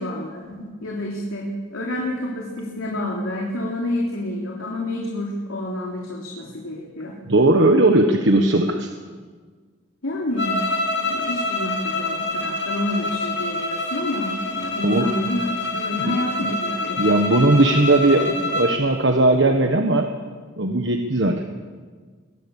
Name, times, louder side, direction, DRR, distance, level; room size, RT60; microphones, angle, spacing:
voice 1, 0.0-7.2 10.0-10.6 10.9-17.5, left 1 dB, 90° left, -2 dB, 3.5 m, -29 dB
voice 2, 7.3-8.9 14.8-15.1 15.9-16.6 17.0-20.1 20.6-21.4, right 2 dB, 60° right, 4 dB, 1.4 m, -18 dB
sound 1, 10.4-18.8, left 2 dB, 60° left, 3.7 m, -26 dB
23.0 x 18.0 x 7.2 m, 1.5 s
head